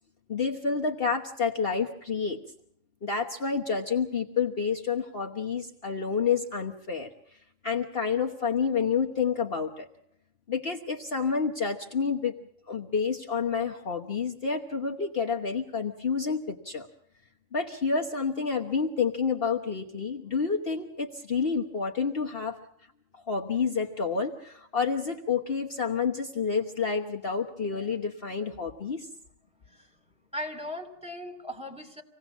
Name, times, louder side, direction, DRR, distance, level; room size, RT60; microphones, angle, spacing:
voice 1, 0.3-2.4 3.0-7.1 7.6-9.9 10.5-12.4 12.7-16.9 17.5-22.6 23.3-29.1, left 5 dB, 45° left, 1 dB, 1.4 m, -29 dB
voice 2, 30.3-32.0, left 1 dB, 5° right, 1 dB, 2.7 m, -38 dB
26.0 x 18.0 x 7.2 m, 0.72 s
omnidirectional pair, 1.4 m